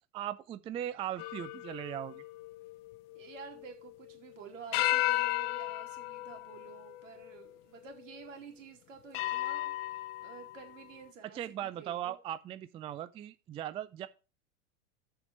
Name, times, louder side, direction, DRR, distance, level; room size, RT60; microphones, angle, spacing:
voice 1, 0.1-2.2 11.3-14.1, right 11 dB, 15° right, 0.3 m, -38 dB
sound 1, 1.2-4.1 4.7-7.5 8.1-8.2 9.1-10.7, left 18 dB, 50° left, 0.7 m, -35 dB
voice 2, 3.1-9.7 10.2-12.2, right 5 dB, 75° right, 3.1 m, -50 dB
6.9 x 5.6 x 7.1 m
hypercardioid pair, 95°, 39 cm